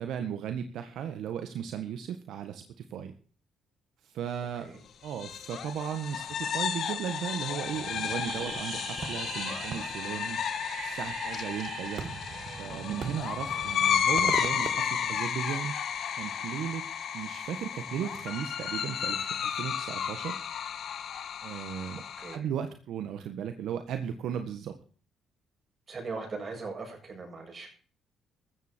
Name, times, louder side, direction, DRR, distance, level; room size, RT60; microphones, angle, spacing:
voice 1, 0.0-3.1 4.0-4.7 5.0-10.4 10.8-12.0 12.6-15.7 16.2-16.9 17.1-20.4 21.4-22.0 22.3-24.8, right 8 dB, 75° right, 8 dB, 1.6 m, -36 dB
sound 1, 5.1-22.4, left 8 dB, 60° left, 1.7 m, -33 dB
Fireworks, 7.7-15.8, right 6 dB, 55° right, 2.0 m, -40 dB
voice 2, 25.9-27.7, right 4 dB, 40° right, 2 dB, 7.7 m, -39 dB
15.0 x 13.5 x 4.5 m, 0.41 s
cardioid pair, 105°, 0 cm